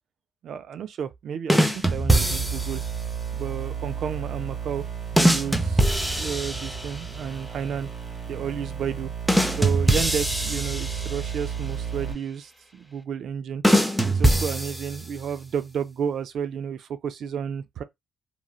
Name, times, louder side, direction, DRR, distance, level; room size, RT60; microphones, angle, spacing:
voice 1, 0.4-2.8 3.3-4.8 5.1-7.9 8.3-9.1 9.5-13.6 14.1-17.8, right 7 dB, 65° right, 0.4 m, -32 dB
sound 1, 1.5-2.9 5.2-7.1 9.3-11.4 13.6-15.3, right 1 dB, 5° right, 0.6 m, -22 dB
sound 2, 2.1-12.1, right 8 dB, 30° right, 1.8 m, -33 dB
3.0 x 2.5 x 2.3 m
cardioid pair, 90°, 0 cm